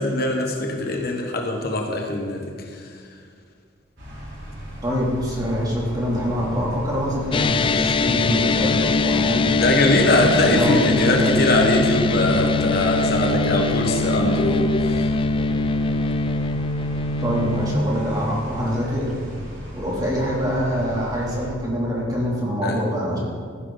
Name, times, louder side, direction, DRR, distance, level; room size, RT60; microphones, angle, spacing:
voice 1, 0.0-2.6 9.6-15.1 22.6-22.8, left 2 dB, 50° left, 2 dB, 1.3 m, -21 dB
sound 1, 4.0-21.5, equal, 65° right, 3.8 m, -37 dB
voice 2, 4.8-9.6 10.1-11.3 17.2-19.1 19.7-23.2, equal, 20° right, -4 dB, 2.9 m, -25 dB
sound 2, 7.3-17.8, left 3 dB, 25° left, 0.3 m, -22 dB
15.0 x 10.5 x 4.0 m, 2.1 s
head